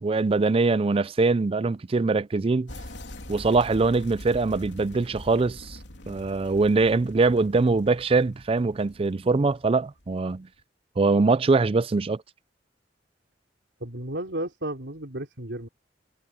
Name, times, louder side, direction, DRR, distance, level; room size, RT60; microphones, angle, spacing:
voice 1, 0.0-2.7 3.3-5.8 6.1-10.5 11.0-12.2, right 3 dB, 30° right, 0.4 m, -23 dB
sound 1, 2.7-10.4, left 1 dB, 75° left, 3.8 m, -44 dB
voice 2, 13.8-15.7, right 1 dB, 90° right, 3.2 m, -33 dB
head